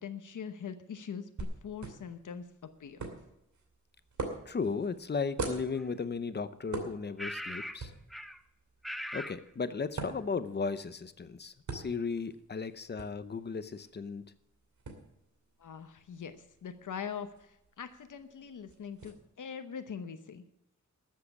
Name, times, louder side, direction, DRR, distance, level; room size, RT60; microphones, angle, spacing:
voice 1, 0.0-3.1 15.6-20.4, left 7 dB, 80° left, 1.0 m, -42 dB
sound 1, 1.4-19.1, right 3 dB, 70° right, 2.7 m, -45 dB
voice 2, 4.5-7.9 9.1-14.2, left 5 dB, 35° left, 0.7 m, -35 dB
sound 2, 5.7-5.8 7.2-7.8 8.1-8.4 8.8-9.4, equal, ahead, 0.6 m, -39 dB
13.0 x 7.7 x 8.4 m
wide cardioid pair, 175°, 30 cm